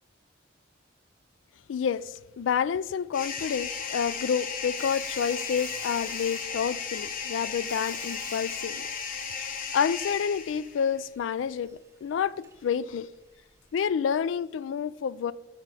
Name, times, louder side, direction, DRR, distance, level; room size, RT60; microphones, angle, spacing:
voice 1, 1.7-8.9 9.4-13.1 13.7-15.3, left 7 dB, 85° left, 0.3 m, -29 dB
sound 1, 3.1-10.9, left 6 dB, 50° left, 1.0 m, -35 dB
Sawing, 4.8-13.9, right 4 dB, 15° right, 0.9 m, -51 dB
10.0 x 6.3 x 4.8 m
head